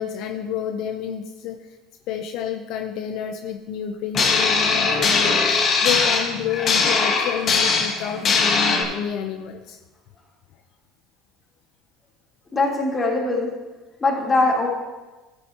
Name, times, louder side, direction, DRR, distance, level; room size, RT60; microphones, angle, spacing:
voice 1, 0.0-1.6 2.1-9.8, left 8 dB, 65° left, 5 dB, 0.7 m, -29 dB
sound 1, 4.1-8.8, left 4 dB, 45° left, 1.6 m, -20 dB
voice 2, 12.5-13.5 14.0-14.7, left 2 dB, 25° left, -3 dB, 3.4 m, -21 dB
13.5 x 8.8 x 2.9 m, 1.2 s
supercardioid pair, 95°, 0 cm